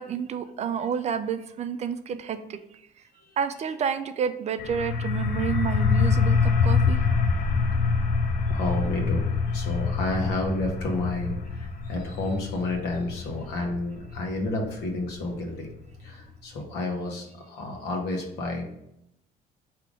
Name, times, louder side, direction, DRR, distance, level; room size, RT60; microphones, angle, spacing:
voice 1, 0.0-2.6 3.4-7.0, right 7 dB, 40° right, 10 dB, 0.4 m, -29 dB
sound 1, 4.6-16.1, left 5 dB, 55° left, 0.6 m, -26 dB
voice 2, 7.7-9.2 9.5-15.7 16.0-18.6, left 2 dB, 85° left, 1 dB, 1.2 m, -31 dB
3.7 x 2.9 x 4.8 m, 0.80 s
cardioid pair, 110°, 17 cm